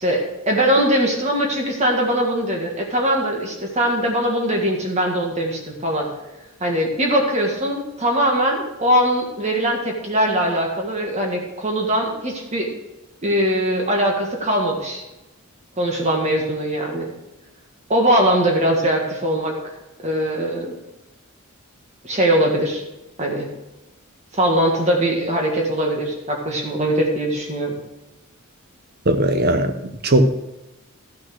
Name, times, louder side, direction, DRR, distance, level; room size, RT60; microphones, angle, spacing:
voice 1, 0.0-6.1 6.6-12.7 13.2-15.0 15.8-17.1 17.9-19.5 20.0-20.8 22.0-22.8 23.2-23.5 24.3-27.8, right 1 dB, 30° right, 0 dB, 1.8 m, -21 dB
voice 2, 29.1-30.4, right 1 dB, 45° right, 8 dB, 1.0 m, -18 dB
13.0 x 6.4 x 6.3 m, 0.98 s
head